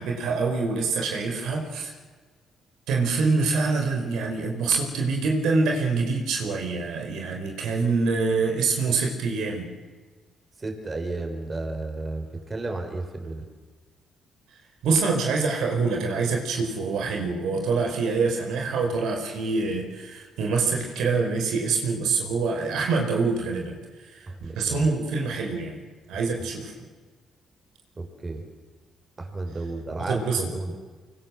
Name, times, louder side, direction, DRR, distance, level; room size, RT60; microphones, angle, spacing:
voice 1, 0.0-1.9 2.9-9.7 14.8-24.3 24.6-25.8 26.1-26.9 30.0-30.5, right 4 dB, 85° right, 1 dB, 5.0 m, -25 dB
voice 2, 10.6-13.5 24.3-24.9 28.0-28.4 29.2-30.8, right 2 dB, 30° right, 4 dB, 5.4 m, -33 dB
24.5 x 24.0 x 7.7 m, 1.4 s
cardioid pair, 90°, 0 cm